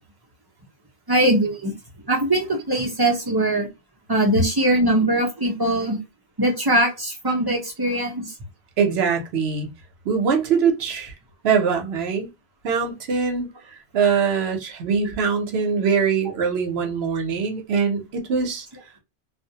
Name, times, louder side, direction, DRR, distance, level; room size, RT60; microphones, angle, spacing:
voice 1, 1.1-1.7 2.1-3.7 4.1-6.0 6.4-8.3, right 1 dB, 30° right, 0.5 m, -21 dB
voice 2, 8.8-9.7 10.0-11.1 11.4-12.3 12.6-13.5 13.9-18.7, right 6 dB, 80° right, 0.9 m, -22 dB
2.3 x 2.1 x 2.7 m
omnidirectional pair, 1.1 m